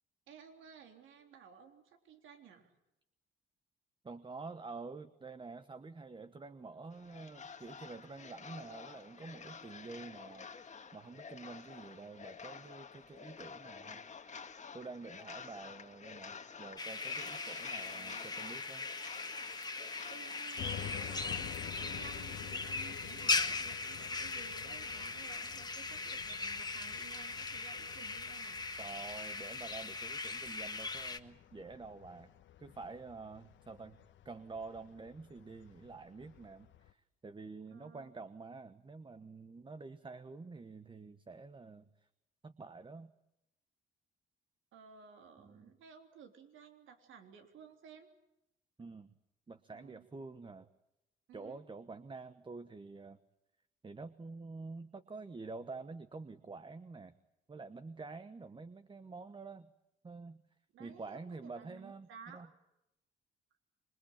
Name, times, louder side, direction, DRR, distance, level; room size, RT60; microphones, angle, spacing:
voice 1, 0.3-2.7 17.9-18.4 20.1-28.6 37.7-38.1 44.7-48.1 49.7-50.1 51.3-51.6 60.7-62.5, right 7 dB, 80° right, 5 dB, 3.5 m, -55 dB
voice 2, 4.0-10.5 10.9-14.0 14.7-18.9 28.8-32.3 32.6-34.0 34.2-41.9 42.4-43.1 45.4-45.7 48.8-49.1 49.5-50.7 51.3-53.2 53.8-57.1 57.5-59.7 60.0-60.4 60.8-62.5, right 3 dB, 25° right, 11 dB, 1.2 m, -48 dB
sound 1, 6.9-20.9, left 6 dB, 35° left, 1.7 m, -50 dB
sound 2, 16.8-31.2, left 3 dB, 20° left, 1.6 m, -39 dB
sound 3, 20.6-36.9, left 11 dB, 70° left, 1.2 m, -50 dB
26.5 x 22.5 x 8.8 m, 0.88 s
cardioid pair, 90°, 20 cm